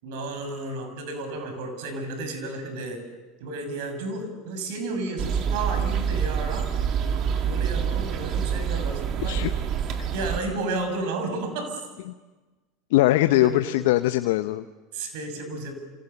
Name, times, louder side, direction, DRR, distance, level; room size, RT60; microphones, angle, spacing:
voice 1, 0.0-3.0 3.4-6.7 7.4-9.4 10.1-11.8 13.3-13.9 14.9-15.7, right 2 dB, 65° right, 7 dB, 6.5 m, -32 dB
sound 1, 5.2-10.4, right 7 dB, 50° right, 2.7 m, -26 dB
voice 2, 9.2-9.5 10.0-10.1 12.9-14.6, left 16 dB, 70° left, 11 dB, 0.8 m, -21 dB
28.5 x 28.0 x 6.9 m, 1.3 s
hypercardioid pair, 75°, 0 cm